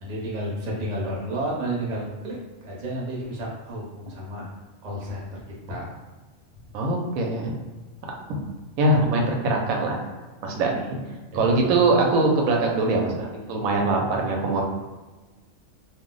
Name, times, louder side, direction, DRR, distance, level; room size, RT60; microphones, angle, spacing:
voice 1, 0.0-4.5 4.8-5.4 5.7-5.9 11.3-11.6 14.5-14.6, right 1 dB, 40° right, -4 dB, 0.7 m, -31 dB
voice 2, 6.7-7.5 8.8-10.0 10.4-11.0 11.3-14.6, right 2 dB, 85° right, 1 dB, 1.0 m, -22 dB
2.4 x 2.0 x 3.7 m, 1.2 s
omnidirectional pair, 1.4 m